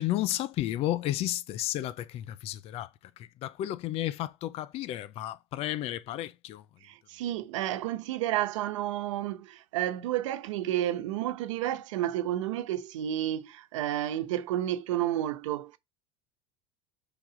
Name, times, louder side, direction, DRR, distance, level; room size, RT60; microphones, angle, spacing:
voice 1, 0.0-2.9 3.2-6.6, left 14 dB, 40° left, 0.6 m, -32 dB
voice 2, 6.8-15.8, right 12 dB, 90° right, 1.0 m, -31 dB
5.7 x 4.0 x 5.0 m
supercardioid pair, 135°, 15 cm